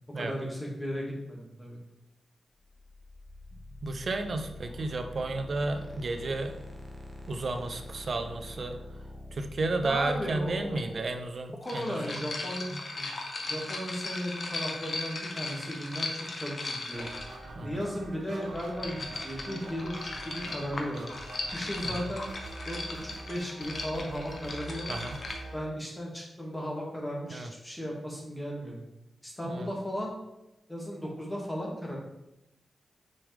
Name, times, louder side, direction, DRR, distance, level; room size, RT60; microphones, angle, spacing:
voice 1, 0.2-1.8 4.3-4.4 9.8-11.0 11.6-13.1 13.4-17.1 17.6-21.0 21.5-22.3 22.7-24.9 25.5-28.8 29.2-30.1 30.7-32.0, equal, 15° left, -2 dB, 2.3 m, -36 dB
sound 1, 2.6-11.5, left 1 dB, 15° right, 1.6 m, -46 dB
voice 2, 3.8-6.5 7.3-8.8 9.3-12.2 12.7-12.8 17.5-17.8 21.8-22.1 24.9-25.2 27.3-27.5 29.5-29.7, right 2 dB, 60° right, 7 dB, 0.7 m, -32 dB
sound 2, 10.8-10.9 11.6-17.5 18.4-25.4, left 2 dB, 55° left, 1.2 m, -38 dB
sound 3, 16.9-25.6, right 2 dB, 80° right, 1.3 m, -44 dB
6.8 x 5.3 x 3.5 m, 0.90 s
cardioid pair, 55°, 0 cm